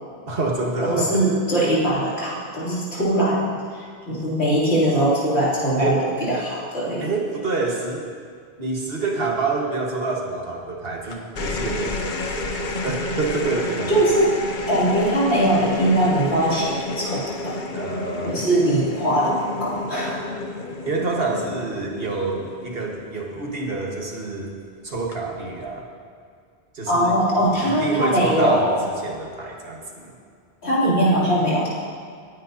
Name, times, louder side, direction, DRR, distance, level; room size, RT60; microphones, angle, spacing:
voice 1, 0.3-1.3 5.8-6.0 7.0-8.1 8.6-14.0 17.7-18.4 20.8-24.5 24.8-25.9 26.7-27.1 27.5-30.1, right 3 dB, 60° right, -1 dB, 1.7 m, -27 dB
voice 2, 0.8-7.1 13.9-14.4 14.7-17.6 18.2-19.3 19.6-20.2 26.9-28.8 30.6-31.7, right 1 dB, 75° left, -8 dB, 3.3 m, -21 dB
sound 1, 11.1-23.7 24.9-25.4, left 3 dB, 50° left, 0.8 m, -31 dB
19.0 x 9.1 x 2.8 m, 2.2 s
omnidirectional pair, 1.1 m